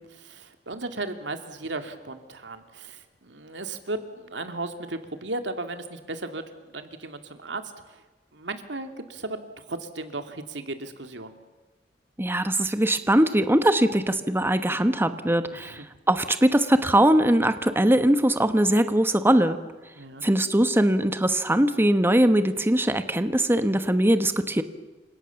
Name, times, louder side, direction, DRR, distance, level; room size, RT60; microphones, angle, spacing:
voice 1, 0.1-8.0 8.3-11.3 15.5-15.7 20.0-20.2, right 2 dB, 90° right, 7 dB, 2.7 m, -36 dB
voice 2, 12.2-19.6 20.2-24.6, right 1 dB, 15° right, 10 dB, 1.3 m, -21 dB
30.0 x 26.5 x 7.2 m, 1.2 s
head